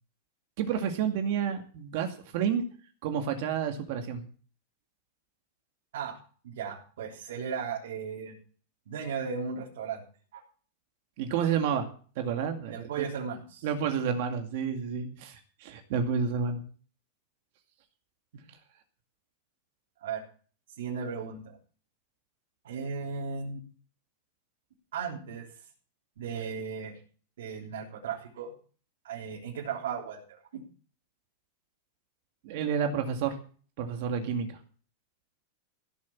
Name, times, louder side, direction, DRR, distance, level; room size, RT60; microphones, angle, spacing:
voice 1, 0.6-2.6 3.0-4.2 11.2-11.9 12.2-12.8 13.6-16.6 32.4-33.4 33.8-34.6, right 7 dB, 45° right, 5 dB, 2.2 m, -30 dB
voice 2, 6.4-8.4 8.9-10.0 10.3-10.4 12.7-13.7 20.0-20.2 20.8-21.6 22.6-23.6 24.9-25.7 26.2-27.0 27.4-28.5 29.0-30.6, right 6 dB, 75° right, -1 dB, 3.6 m, -36 dB
16.5 x 7.4 x 7.3 m, 0.41 s
supercardioid pair, 175°, 0 cm